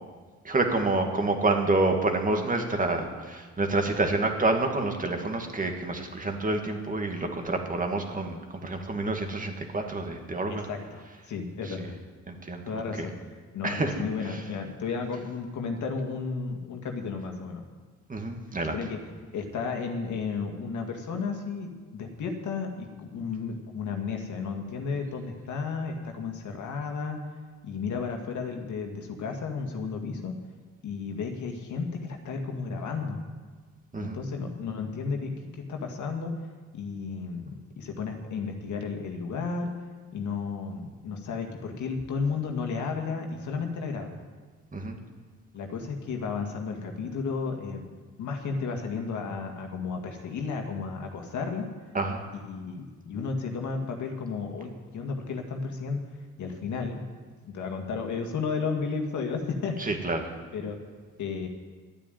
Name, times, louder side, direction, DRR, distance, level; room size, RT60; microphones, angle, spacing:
voice 1, 0.4-10.7 11.7-11.9 12.3-12.6 13.0-13.1 13.6-14.4 18.1-18.8 33.9-34.2 44.7-45.0 51.9-52.3 59.8-60.3, right 2 dB, 25° right, 4 dB, 2.2 m, -28 dB
voice 2, 10.5-12.0 12.6-13.1 13.5-17.6 18.7-19.0 19.3-27.2 27.6-30.4 30.8-33.2 34.0-36.3 36.7-39.7 40.1-44.2 45.5-47.9 48.2-51.7 52.5-56.0 56.4-57.0 57.4-60.0 60.5-60.8 61.2-61.5, left 5 dB, 75° left, 3 dB, 2.1 m, -33 dB
12.5 x 8.9 x 9.3 m, 1.5 s
cardioid pair, 90°, 30 cm